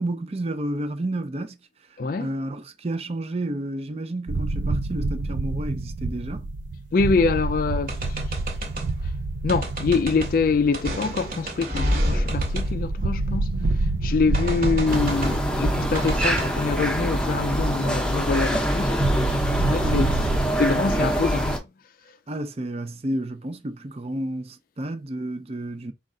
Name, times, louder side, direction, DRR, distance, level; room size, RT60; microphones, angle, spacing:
voice 1, 0.0-1.6 2.2-6.5 19.8-20.1 22.3-25.9, right 1 dB, 35° right, 0.5 m, -31 dB
voice 2, 2.0-2.3 6.9-8.2 9.4-13.5 14.0-20.1 20.6-21.6, left 4 dB, 50° left, 0.3 m, -25 dB
sound 1, 4.3-18.4 18.6-18.7 19.0-20.5, right 2 dB, 85° right, 0.5 m, -28 dB
sound 2, 7.9-8.9 9.5-10.3 10.7-13.6 14.3-15.4 15.9-16.5, equal, 50° right, 1.3 m, -29 dB
sound 3, 14.9-21.6, equal, 5° left, 0.8 m, -24 dB
5.2 x 2.4 x 3.7 m
head